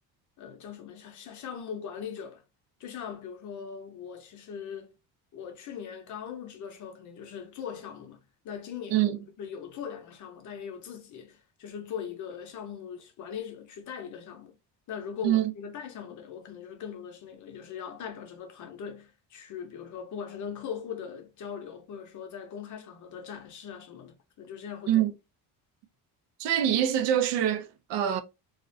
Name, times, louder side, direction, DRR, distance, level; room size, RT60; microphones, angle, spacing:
voice 1, 0.4-2.4 2.8-4.9 5.3-8.2 8.4-14.5 14.9-25.0, left 7 dB, 45° left, 0.6 m, -40 dB
voice 2, 26.4-28.2, right 11 dB, 90° right, 0.6 m, -25 dB
2.4 x 2.1 x 2.4 m
cardioid pair, 160°, 42 cm